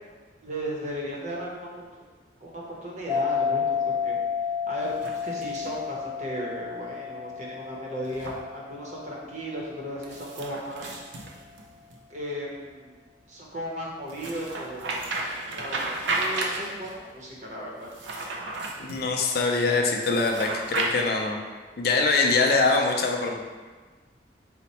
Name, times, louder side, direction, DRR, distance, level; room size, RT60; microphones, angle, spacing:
voice 1, 0.4-1.5 1.8-1.9 2.4-4.2 4.7-11.0 12.1-12.9 13.3-15.0 15.5-17.9, equal, 40° right, -3 dB, 0.8 m, -36 dB
sound 1, 3.1-10.1, left 6 dB, 15° left, 0.6 m, -31 dB
sound 2, 4.8-5.8 8.0-8.4 10.0-12.0 14.1-17.0 17.8-19.0 20.0-20.9, right 2 dB, 80° right, 0.5 m, -33 dB
voice 2, 18.8-21.4 21.8-23.4, left 3 dB, 55° left, 2 dB, 0.5 m, -23 dB
4.2 x 2.1 x 4.1 m, 1.4 s
head